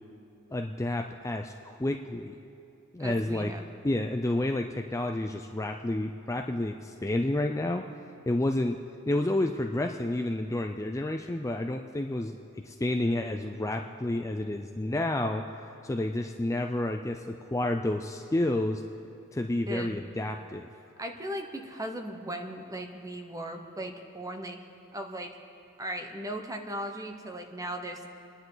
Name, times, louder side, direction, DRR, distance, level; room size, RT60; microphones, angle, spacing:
voice 1, 0.5-2.4 2.9-3.5 3.8-7.8 8.3-8.8 9.1-12.4 12.6-15.4 15.8-18.8 19.3-20.7, left 1 dB, 15° left, 4 dB, 0.4 m, -30 dB
voice 2, 3.0-3.7 19.7-20.0 21.0-24.6 24.9-25.3 25.8-28.1, right 1 dB, 15° right, 5 dB, 1.0 m, -37 dB
28.0 x 10.5 x 3.9 m, 2.6 s
head